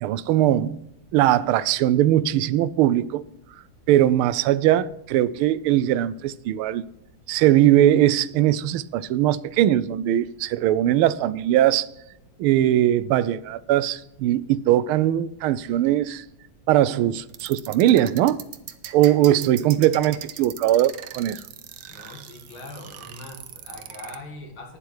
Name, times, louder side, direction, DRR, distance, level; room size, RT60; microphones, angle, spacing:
voice 1, 0.0-0.8 1.1-3.2 3.9-6.8 7.3-11.9 12.4-16.2 16.7-18.4 18.9-21.4, right 12 dB, 85° right, 1.5 m, -20 dB
sound 1, 17.3-24.2, right 10 dB, 70° right, 1.5 m, -39 dB
voice 2, 21.9-24.8, left 2 dB, 70° left, 2.9 m, -41 dB
11.5 x 10.0 x 4.7 m
omnidirectional pair, 2.3 m